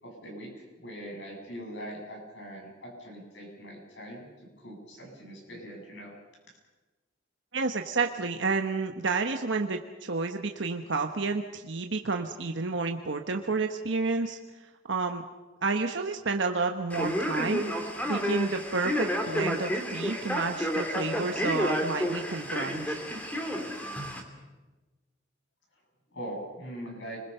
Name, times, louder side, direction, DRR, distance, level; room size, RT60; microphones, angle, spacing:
voice 1, 0.0-4.3 4.6-6.1 26.1-27.2, equal, 70° left, 0 dB, 7.9 m, -42 dB
voice 2, 7.5-14.4 14.9-15.2 15.6-17.6 18.1-23.0, right 3 dB, 70° right, 4 dB, 1.1 m, -30 dB
Male speech man speaking, 16.9-24.2, equal, 10° left, 2.6 m, -31 dB
30.0 x 21.5 x 5.6 m, 1.2 s
head